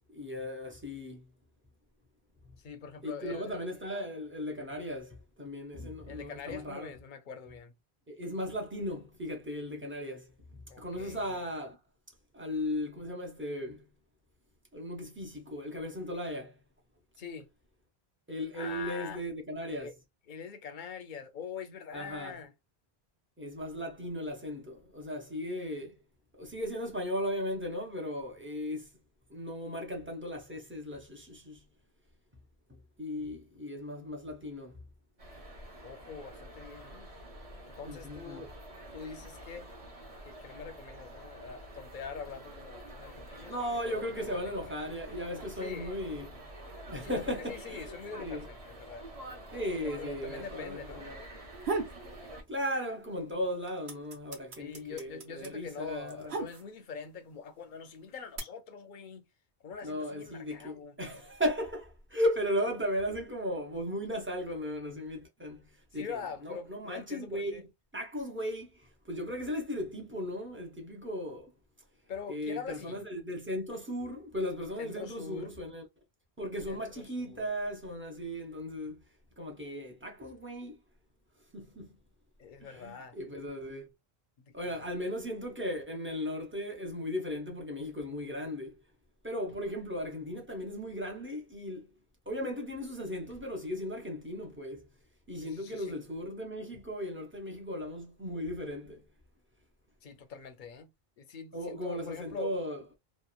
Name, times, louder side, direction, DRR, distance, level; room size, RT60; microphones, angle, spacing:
voice 1, 0.1-1.3 2.4-2.6 3.0-6.9 8.1-11.8 12.3-13.8 14.7-16.5 18.3-19.9 21.9-22.4 23.4-26.0 26.4-28.9 29.3-31.6 32.7-34.8 37.9-38.4 43.5-46.3 46.9-47.9 48.2-48.4 49.5-51.2 52.5-56.4 59.8-65.6 65.9-67.7 67.9-71.5 72.3-75.9 76.4-79.0 79.4-80.8 81.5-82.0 82.6-83.9 84.5-88.8 89.2-91.9 92.3-94.9 95.3-99.0 101.5-102.8, equal, 15° right, 0.5 m, -36 dB
voice 2, 2.6-3.6 6.1-7.7 10.7-11.4 17.2-17.5 18.5-19.2 19.8-19.9 20.3-22.5 35.8-37.1 37.7-38.5 38.9-39.7 40.2-44.7 45.6-45.9 47.0-49.0 50.0-51.1 54.6-59.2 59.6-61.0 65.9-67.6 72.1-73.1 74.8-75.5 76.7-77.5 82.4-83.2 84.6-84.9 95.3-96.0 100.0-102.5, left 6 dB, 60° left, 0.6 m, -44 dB
sound 1, 35.2-52.4, right 1 dB, 35° right, 0.9 m, -47 dB
sound 2, 51.3-52.0 52.4-53.1 53.4-57.0 57.7-58.4, right 3 dB, 85° right, 1.1 m, -36 dB
3.0 x 2.1 x 2.3 m
omnidirectional pair, 1.1 m